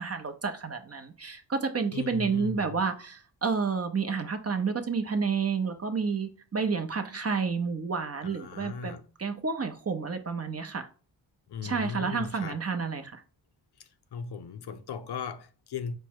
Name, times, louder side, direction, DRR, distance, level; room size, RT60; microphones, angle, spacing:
voice 1, 0.0-8.9 9.2-10.9 11.6-13.2, right 5 dB, 30° right, 0.7 m, -30 dB
voice 2, 1.9-2.8 8.2-9.1 11.5-12.6 13.8-16.0, left 6 dB, 55° left, 0.5 m, -38 dB
4.5 x 2.1 x 4.5 m
cardioid pair, 50°, 47 cm